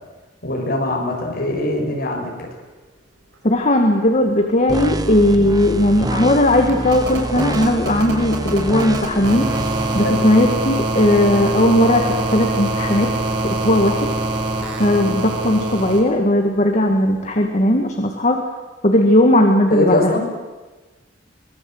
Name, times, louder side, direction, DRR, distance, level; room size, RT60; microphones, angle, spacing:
voice 1, 0.4-2.3 10.0-10.2 19.7-20.3, left 1 dB, 55° left, 0 dB, 6.4 m, -21 dB
voice 2, 3.4-9.5 9.9-13.1 13.4-14.1 14.8-18.4 18.8-20.1, left 1 dB, 40° left, 3 dB, 2.0 m, -17 dB
sound 1, 4.7-10.0, right 1 dB, 20° right, 1.4 m, -26 dB
sound 2, 5.2-16.0 17.4-17.5, right 2 dB, 75° right, 5.6 m, -24 dB
24.0 x 21.0 x 8.0 m, 1.3 s
head